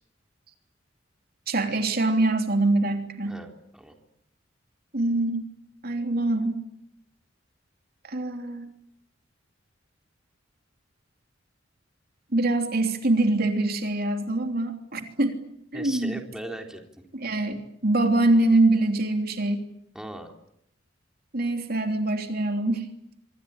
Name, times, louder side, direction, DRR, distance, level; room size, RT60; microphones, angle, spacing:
voice 1, 1.5-3.4 4.9-5.4 5.8-6.6 8.0-8.7 12.3-15.4 15.7-16.2 17.1-19.6 21.3-22.9, right 2 dB, 55° right, 5 dB, 3.3 m, -24 dB
voice 2, 3.3-3.9 15.7-16.8 19.9-20.3, right 1 dB, 5° right, 3 dB, 3.6 m, -38 dB
26.0 x 25.5 x 8.7 m, 0.77 s
head